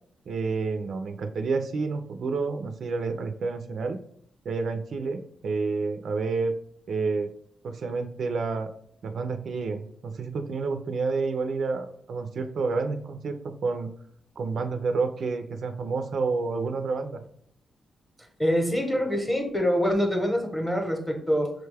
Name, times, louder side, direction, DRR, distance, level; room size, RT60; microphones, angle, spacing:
voice 1, 0.3-4.0 4.5-6.5 6.9-7.3 7.6-8.7 9.0-13.9 14.4-17.2, right 4 dB, 55° right, 7 dB, 0.4 m, -29 dB
voice 2, 18.4-21.5, equal, 5° left, 2 dB, 0.8 m, -25 dB
6.0 x 2.2 x 3.3 m, 0.67 s
wide cardioid pair, 160°, 0 cm